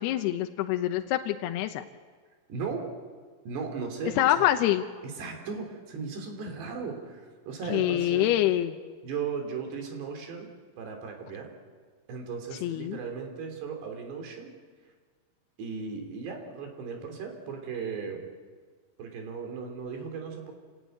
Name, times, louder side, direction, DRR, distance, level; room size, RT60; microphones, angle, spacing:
voice 1, 0.0-1.9 4.2-4.9 7.7-8.8 12.6-13.0, left 13 dB, 80° left, 7 dB, 2.8 m, -25 dB
voice 2, 2.5-2.9 3.5-4.5 5.0-8.3 9.0-10.5 10.8-11.5 12.1-14.6 15.6-18.3 19.0-20.5, right 5 dB, 85° right, 3 dB, 5.4 m, -36 dB
28.0 x 16.5 x 9.2 m, 1.5 s
omnidirectional pair, 4.7 m